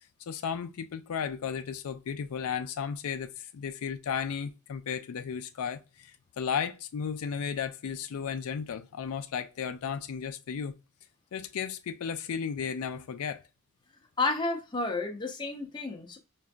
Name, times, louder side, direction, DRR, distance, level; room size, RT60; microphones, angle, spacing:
voice 1, 0.3-10.7 11.3-13.4, left 7 dB, 75° left, 0.4 m, -34 dB
voice 2, 14.2-16.2, left 3 dB, 20° left, 0.6 m, -31 dB
4.9 x 2.6 x 2.2 m
head